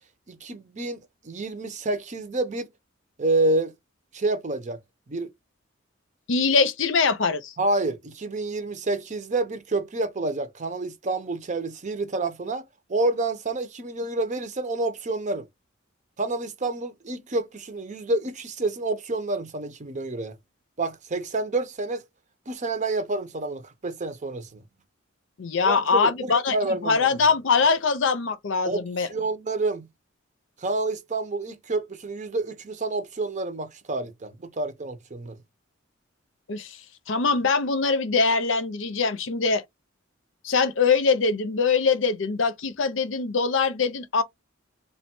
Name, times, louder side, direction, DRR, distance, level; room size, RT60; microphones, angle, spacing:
voice 1, 0.3-2.7 3.2-3.7 4.1-4.8 5.1-5.3 7.6-12.6 12.9-15.5 16.2-20.3 20.8-22.0 22.5-24.6 25.6-27.1 28.7-28.8 29.1-29.9 30.6-35.4, right 2 dB, 35° right, 0.6 m, -28 dB
voice 2, 6.3-7.5 25.4-26.6 26.8-29.1 36.5-36.8 37.1-39.6 40.4-44.2, left 5 dB, 70° left, 0.6 m, -23 dB
3.3 x 2.3 x 4.3 m
head